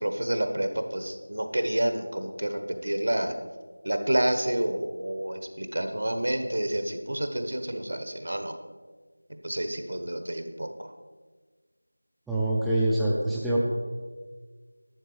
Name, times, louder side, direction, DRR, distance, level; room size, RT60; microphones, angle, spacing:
voice 1, 0.0-3.3 3.8-8.5 9.4-10.9, right 1 dB, 65° right, 7 dB, 1.3 m, -29 dB
voice 2, 12.3-13.6, right 1 dB, ahead, -8 dB, 0.5 m, -25 dB
11.5 x 7.7 x 5.0 m, 1.4 s
figure-of-eight pair, 175°, 0 cm